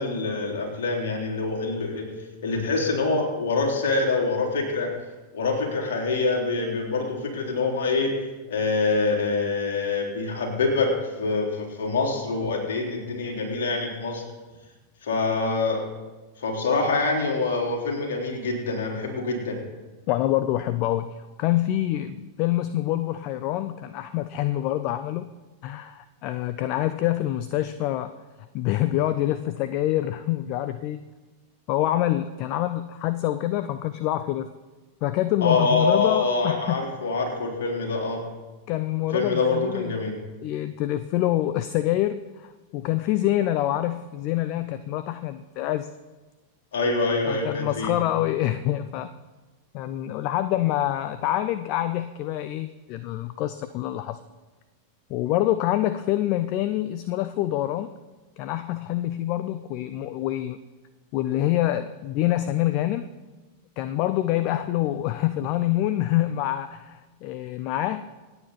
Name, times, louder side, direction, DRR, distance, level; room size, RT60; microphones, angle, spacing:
voice 1, 0.0-2.1 2.4-4.9 5.3-8.1 8.5-14.2 15.0-15.8 16.4-19.6 35.4-38.2 39.1-40.1 46.7-47.9, left 3 dB, 60° left, 0 dB, 3.6 m, -25 dB
voice 2, 20.1-25.3 25.6-28.1 28.5-31.0 31.7-34.5 35.0-36.9 38.7-39.9 40.4-45.9 47.3-49.1 49.7-54.2 55.1-57.9 58.4-60.6 61.1-63.1 63.8-68.1, left 14 dB, 45° left, 13 dB, 0.5 m, -26 dB
26.5 x 9.0 x 4.1 m, 1.2 s
figure-of-eight pair, 90°, 0 cm